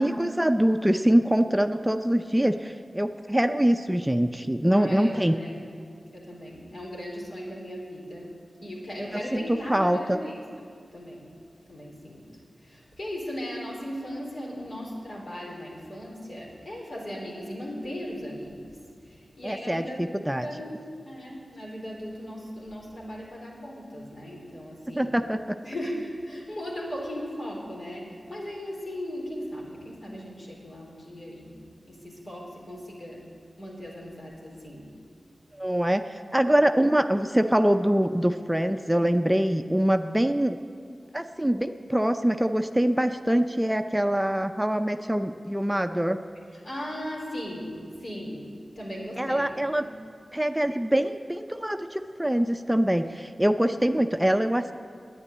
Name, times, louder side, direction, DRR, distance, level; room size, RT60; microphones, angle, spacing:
voice 1, 0.0-5.3 9.1-10.2 19.4-20.5 24.9-25.6 35.6-40.6 41.1-46.2 49.2-49.8 50.3-54.7, right 1 dB, 10° right, 8 dB, 0.5 m, -24 dB
voice 2, 4.7-5.6 6.1-8.3 8.6-10.4 10.9-11.3 11.7-12.2 12.6-18.8 19.0-20.7 21.0-25.1 25.6-31.6 31.9-33.3 33.6-34.9 46.6-49.5 49.8-49.9, equal, 70° left, -3 dB, 4.1 m, -37 dB
10.0 x 9.8 x 9.6 m, 2.2 s
cardioid pair, 45°, 0 cm